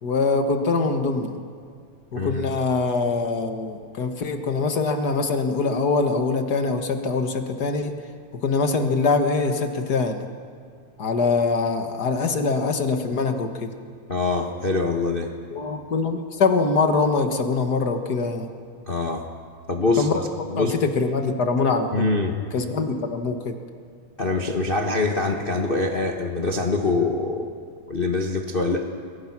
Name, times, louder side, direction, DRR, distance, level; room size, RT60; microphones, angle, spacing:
voice 1, 0.0-1.4 2.1-7.9 8.4-10.2 11.0-13.7 15.5-18.5 20.0-20.2 20.5-22.1 22.5-23.6, left 4 dB, 45° left, 5 dB, 1.4 m, -23 dB
voice 2, 2.1-2.5 14.1-15.3 18.9-19.2 19.7-20.1 20.5-20.8 21.9-22.4 24.2-27.5 27.9-28.9, left 3 dB, 80° left, 2 dB, 0.5 m, -24 dB
29.0 x 21.5 x 6.1 m, 2.1 s
omnidirectional pair, 3.5 m